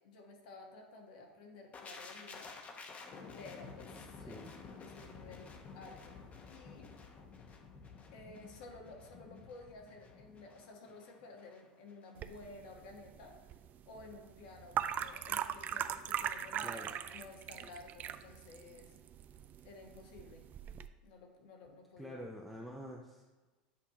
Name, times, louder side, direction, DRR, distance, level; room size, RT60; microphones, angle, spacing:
voice 1, 0.0-2.5 3.4-4.0 4.2-4.4 4.8-6.2 6.5-6.9 8.1-13.4 13.8-19.0 19.6-20.4 21.0-22.2, left 3 dB, 75° left, 1 dB, 1.3 m, -53 dB
sound 1, 1.7-11.6 11.9-12.1, left 4 dB, 30° left, 0.9 m, -52 dB
sound 2, 12.2-20.9, right 9 dB, 40° right, 0.4 m, -40 dB
voice 2, 22.0-23.5, equal, ahead, -2 dB, 0.7 m, -47 dB
8.3 x 2.8 x 4.8 m, 1.2 s
hypercardioid pair, 95°, 4 cm